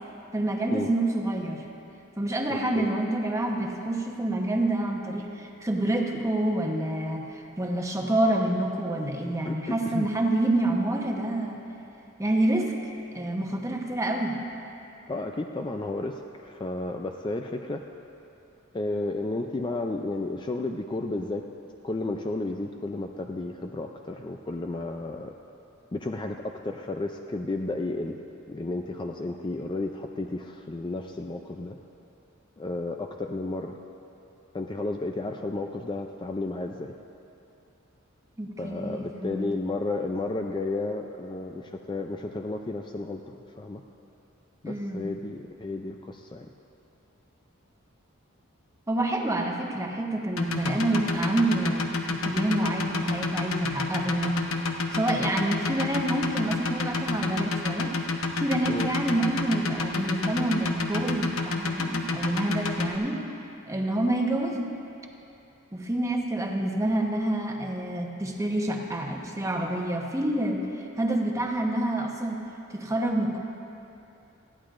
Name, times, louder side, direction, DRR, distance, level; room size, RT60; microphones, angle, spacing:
voice 1, 0.3-1.6 2.2-11.6 12.2-14.4 38.4-39.5 44.6-45.1 48.9-54.5 54.9-58.0 58.3-63.2 63.7-64.7 65.7-72.4 72.7-73.4, right 1 dB, 15° right, 1 dB, 1.0 m, -28 dB
voice 2, 9.4-10.1 15.1-17.8 18.7-21.4 21.8-25.3 25.9-28.2 28.5-31.8 32.6-33.8 34.5-36.9 38.6-43.8 44.6-46.5 58.7-58.9, left 2 dB, 20° left, 3 dB, 0.4 m, -32 dB
sound 1, 50.4-63.0, left 3 dB, 70° left, 0.9 m, -28 dB
20.0 x 14.5 x 2.5 m, 2.8 s
head